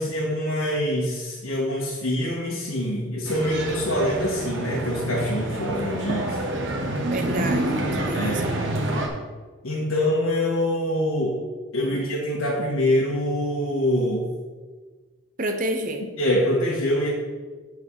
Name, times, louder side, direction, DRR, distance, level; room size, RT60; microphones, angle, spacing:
voice 1, 0.0-6.4 8.1-8.4 9.6-11.4 11.7-14.3 16.2-17.1, left 1 dB, 75° left, -5 dB, 1.5 m, -25 dB
sound 1, 3.3-9.1, right 1 dB, 55° right, 1.3 m, -27 dB
voice 2, 7.1-8.6 11.9-12.0 15.4-16.0, right 1 dB, 40° right, 5 dB, 0.8 m, -29 dB
7.7 x 4.8 x 6.2 m, 1.4 s
head